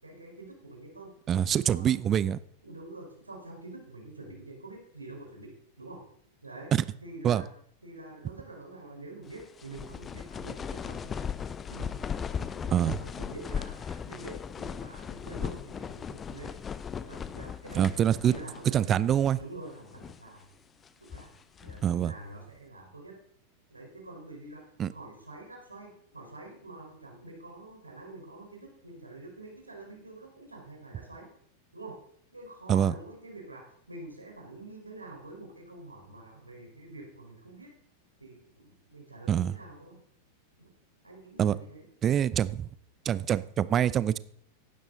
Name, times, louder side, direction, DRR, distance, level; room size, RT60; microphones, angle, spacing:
voice 1, 0.0-1.1 1.6-2.0 2.6-6.0 6.4-6.7 7.0-7.5 7.8-11.2 11.7-16.6 17.0-19.1 19.4-20.5 21.0-21.3 21.6-23.2 23.7-31.3 31.7-32.0 32.3-37.7 38.2-40.0 40.6-40.7 41.0-41.9, right 2 dB, 80° right, 0 dB, 4.6 m, -46 dB
voice 2, 1.3-2.4 6.7-6.8 7.2-7.4 12.7-13.0 17.7-18.3 18.7-19.4 21.8-22.1 24.8-24.9 32.7-32.9 39.3-39.5 41.4-41.6 42.0-42.7 43.0-44.2, right 10 dB, 25° right, 18 dB, 0.6 m, -25 dB
sound 1, 9.3-18.8 19.1-19.2 19.8-20.3 20.8-21.9, left 7 dB, 20° left, 0.7 m, -38 dB
16.0 x 12.0 x 4.0 m, 0.65 s
figure-of-eight pair, 90°, 0 cm